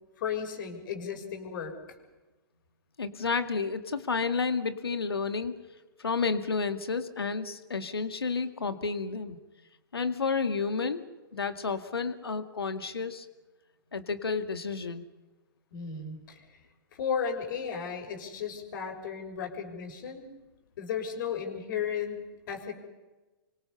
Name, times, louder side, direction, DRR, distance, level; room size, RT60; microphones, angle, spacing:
voice 1, 0.2-1.7 15.7-16.4 16.9-20.2 20.8-22.7, left 7 dB, 55° left, 2 dB, 6.3 m, -34 dB
voice 2, 3.0-5.5 6.0-9.4 9.9-11.1 11.3-13.3 13.9-15.0, left 4 dB, 85° left, 8 dB, 2.2 m, -31 dB
29.5 x 24.5 x 5.6 m, 1.1 s
figure-of-eight pair, 115°, 13 cm